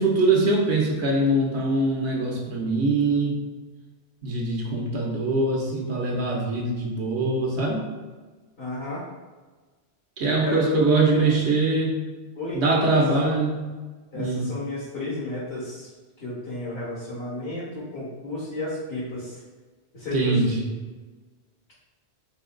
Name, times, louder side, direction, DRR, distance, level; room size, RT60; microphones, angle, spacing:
voice 1, 0.0-3.4 4.2-7.8 10.2-12.0 12.5-13.6 14.1-14.5 20.1-20.6, right 2 dB, 80° right, -2 dB, 1.2 m, -23 dB
voice 2, 8.6-9.0 10.2-11.4 12.4-13.4 14.1-15.9 16.2-19.4 19.9-20.4, left 2 dB, 65° left, -9 dB, 2.0 m, -32 dB
4.0 x 2.7 x 3.8 m, 1.3 s
omnidirectional pair, 1.1 m